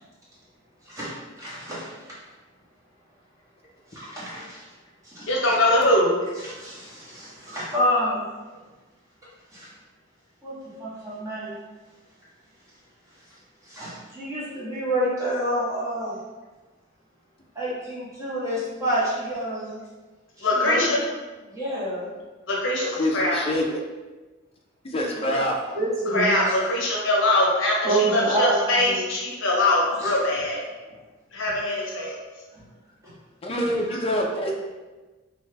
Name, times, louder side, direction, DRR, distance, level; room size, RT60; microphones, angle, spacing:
voice 1, 0.9-1.9 3.9-4.6 5.0-5.3 6.4-8.3 9.5-9.7 10.4-11.6 13.7-16.2 17.5-19.8 20.4-20.8 21.5-22.1 25.2-25.3 25.7-26.5 27.8-29.1 30.0-30.1 32.5-32.6 33.0-33.1 33.9-34.0, right 1 dB, 15° right, -8 dB, 0.9 m, -28 dB
voice 2, 5.3-6.1 20.4-21.0 22.5-23.4 26.1-30.6 31.3-32.2, left 1 dB, 70° left, -2 dB, 0.6 m, -22 dB
voice 3, 22.9-23.8 24.8-25.6 33.4-34.5, equal, 30° left, 0 dB, 0.4 m, -25 dB
2.9 x 2.2 x 3.2 m, 1.2 s
head